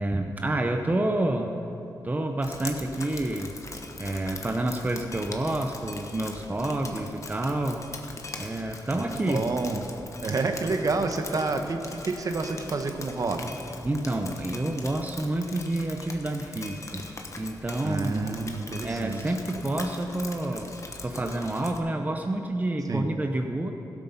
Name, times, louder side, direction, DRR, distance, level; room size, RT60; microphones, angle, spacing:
voice 1, 0.0-1.5 2.0-3.5 4.0-7.8 8.4-9.4 13.8-17.1 17.4-18.3 18.8-20.7 21.0-23.7, right 1 dB, 20° right, 5 dB, 0.7 m, -28 dB
Drip, 2.4-21.8, left 3 dB, 45° left, 1.2 m, -42 dB
voice 2, 8.9-9.9 10.2-13.5 17.8-19.2 22.9-23.1, right 3 dB, 50° right, 6 dB, 1.0 m, -29 dB
15.5 x 8.3 x 5.6 m, 2.9 s
cardioid pair, 90°, 8 cm